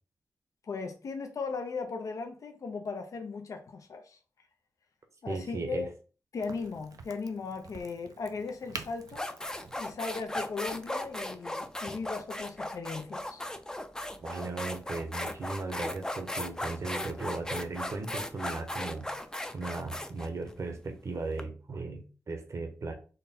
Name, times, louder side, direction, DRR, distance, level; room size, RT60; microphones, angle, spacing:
voice 1, 0.7-4.2 5.2-5.9 6.3-9.3 9.8-13.4, left 4 dB, 65° left, 0.5 m, -37 dB
voice 2, 5.3-5.9 14.2-19.3 19.5-22.9, right 3 dB, 55° right, 0.9 m, -37 dB
Crack, 6.4-11.9, right 5 dB, 75° right, 0.5 m, -48 dB
sound 1, 8.5-8.6 9.1-21.4, left 1 dB, 10° left, 0.5 m, -37 dB
3.8 x 2.2 x 4.1 m
cardioid pair, 80°, 6 cm